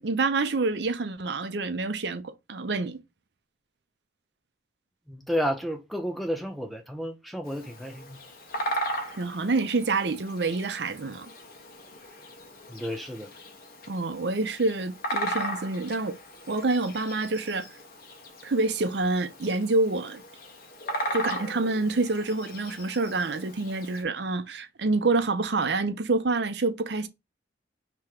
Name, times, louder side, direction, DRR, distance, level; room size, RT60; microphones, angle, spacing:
voice 1, 0.0-3.0 9.1-11.3 13.9-16.1 16.5-17.7 18.4-20.2 21.1-27.1, right 3 dB, 65° right, 0.6 m, -27 dB
voice 2, 5.1-8.2 12.7-13.3, equal, ahead, 0.4 m, -31 dB
Bird vocalization bird call bird song, 7.4-24.0, right 1 dB, 50° left, 1.0 m, -37 dB
3.5 x 2.9 x 4.5 m
head